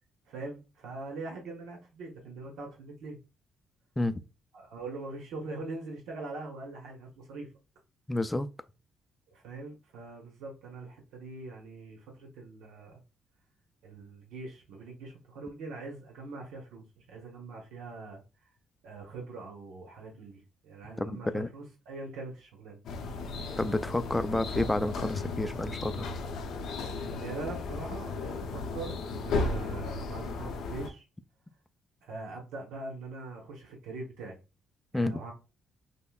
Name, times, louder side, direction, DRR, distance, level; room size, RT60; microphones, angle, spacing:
voice 1, 0.3-3.2 4.5-7.5 9.3-13.0 13.8-18.2 18.8-22.8 27.2-31.0 32.0-34.4 34.9-35.3, right 3 dB, 90° right, 0.9 m, -42 dB
voice 2, 8.1-8.5 21.0-21.5 23.6-26.1 34.9-35.2, left 2 dB, 10° left, 0.3 m, -30 dB
sound 1, 22.8-30.9, left 3 dB, 80° left, 0.6 m, -35 dB
5.3 x 2.1 x 2.3 m
cardioid pair, 90°, 0 cm